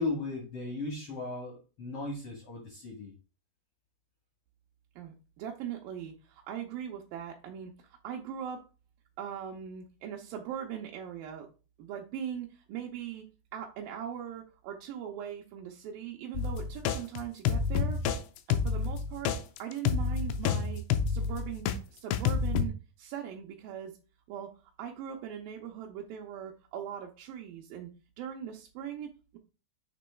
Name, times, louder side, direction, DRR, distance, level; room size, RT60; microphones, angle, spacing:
voice 1, 0.0-3.1, left 3 dB, 65° left, 0 dB, 1.4 m, -36 dB
voice 2, 5.0-8.6 9.2-11.5 11.8-13.2 13.5-18.0 18.5-19.3 19.6-23.9 24.3-24.5 24.8-27.9 28.2-29.4, right 9 dB, 85° right, 0 dB, 2.0 m, -40 dB
sound 1, 16.3-21.7 22.1-22.7, left 7 dB, 85° left, 2.8 m, -29 dB
7.3 x 3.0 x 4.4 m, 0.32 s
omnidirectional pair, 4.9 m